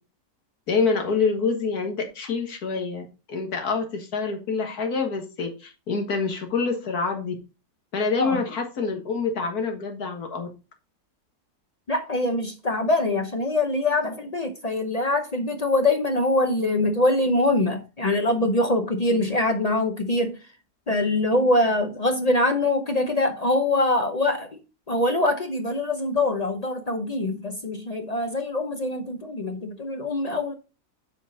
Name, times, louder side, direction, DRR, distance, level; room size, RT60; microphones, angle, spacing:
voice 1, 0.7-7.3 7.9-10.5, left 4 dB, 70° left, 2.0 m, -26 dB
voice 2, 11.9-20.4 20.9-24.5 24.9-30.5, left 2 dB, 45° left, 0.5 m, -23 dB
7.8 x 4.6 x 3.9 m
omnidirectional pair, 1.7 m